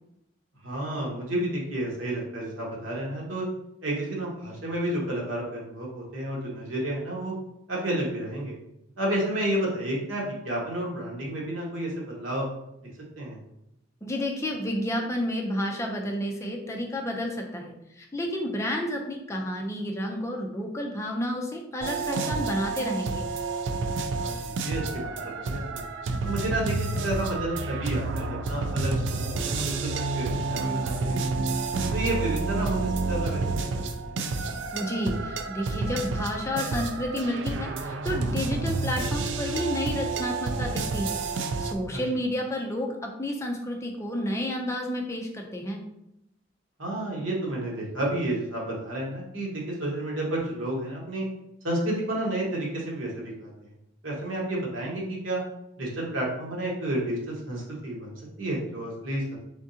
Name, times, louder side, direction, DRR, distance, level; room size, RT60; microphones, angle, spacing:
voice 1, 0.6-3.5 3.8-7.3 7.7-8.5 9.0-12.5 13.2-13.4 24.2-25.8 26.2-31.5 31.9-33.4 33.8-34.1 41.9-42.0 46.8-51.3 51.6-53.5 54.0-55.4 55.8-59.4, right 1 dB, 85° right, -3 dB, 1.3 m, -31 dB
voice 2, 14.0-23.3 34.7-41.2 41.6-45.8, equal, 15° left, 1 dB, 0.5 m, -30 dB
sound 1, 21.8-41.7, right 3 dB, 70° right, 0.4 m, -29 dB
3.7 x 3.6 x 2.7 m, 0.84 s
head